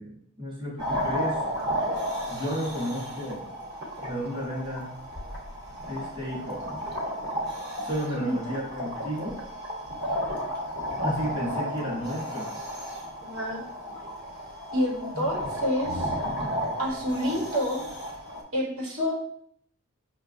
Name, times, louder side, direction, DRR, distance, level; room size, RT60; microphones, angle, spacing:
voice 1, 0.0-1.4 2.3-3.4 4.0-4.9 5.9-6.6 7.8-9.4 11.0-12.5, equal, 25° right, -5 dB, 0.9 m, -32 dB
sound 1, 0.8-18.4, equal, 50° right, 1.1 m, -33 dB
voice 2, 8.1-8.5 13.2-13.6 14.7-16.1 16.8-17.8 18.5-19.2, equal, 80° right, -3 dB, 1.1 m, -28 dB
5.4 x 2.2 x 2.6 m, 0.65 s
head